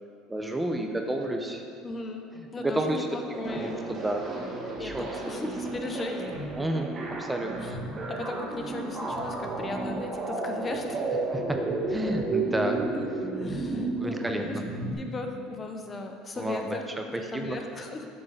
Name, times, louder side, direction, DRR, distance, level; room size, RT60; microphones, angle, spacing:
voice 1, 0.3-1.6 2.4-3.1 3.5-4.4 4.8-5.1 6.6-7.7 11.3-11.6 11.9-12.8 13.7-14.6 16.4-17.6, right 1 dB, 10° right, 4 dB, 0.7 m, -31 dB
voice 2, 1.8-2.3 2.5-3.9 4.7-6.4 7.6-7.8 8.1-11.0 12.6-12.7 13.3-14.6 15.0-16.9 17.3-18.1, left 2 dB, 25° left, 4 dB, 0.7 m, -37 dB
sound 1, 3.3-14.9, right 2 dB, 30° right, 1.3 m, -32 dB
7.9 x 3.8 x 6.6 m, 2.4 s
supercardioid pair, 110°, 0 cm